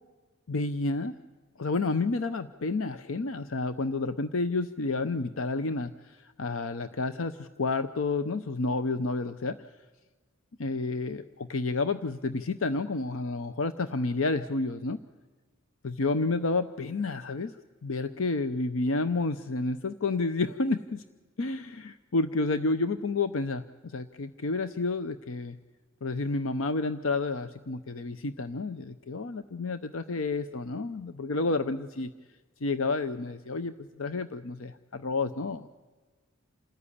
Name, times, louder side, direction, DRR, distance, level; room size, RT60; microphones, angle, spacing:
voice 1, 0.5-1.1 1.6-9.6 10.6-15.0 15.8-17.6 17.8-21.0 21.4-25.6 26.0-32.1 32.6-35.7, left 3 dB, 65° left, 11 dB, 0.7 m, -30 dB
28.0 x 14.0 x 9.9 m, 1.4 s
head